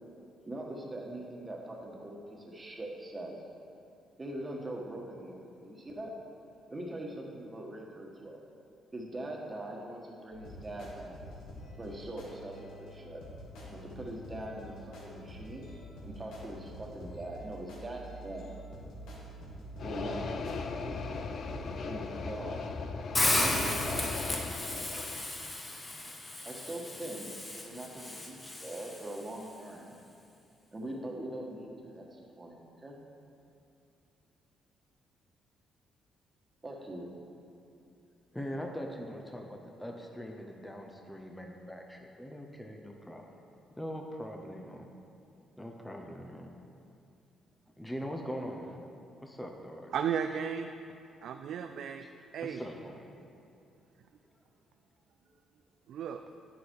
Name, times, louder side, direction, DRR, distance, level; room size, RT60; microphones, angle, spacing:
voice 1, 0.4-3.3 4.2-6.1 6.7-8.4 8.9-11.2 11.8-13.2 13.7-15.7 16.0-18.5 19.8-21.2 21.8-22.6 23.2-24.4 26.4-27.3 27.6-30.0 30.7-33.0 36.6-37.1 48.4-48.5, right 1 dB, 25° right, -1 dB, 1.5 m, -42 dB
Beat Background Music Loop, 10.3-21.7, equal, 85° left, 2.0 m, -47 dB
sound 1, 19.8-25.2, left 4 dB, 55° left, 0.5 m, -38 dB
Hiss, 23.1-29.2, left 2 dB, 25° left, 1.2 m, -34 dB
voice 2, 38.3-43.4 43.8-44.9 45.6-46.5 47.8-48.8 49.2-49.9 52.0-52.1 52.4-53.1, equal, 10° left, 2 dB, 0.8 m, -42 dB
voice 3, 49.9-50.7 51.2-52.0 52.3-52.6 55.9-56.2, right 8 dB, 70° right, 7 dB, 0.3 m, -34 dB
9.2 x 6.9 x 4.7 m, 2.6 s
cardioid pair, 90°, 0 cm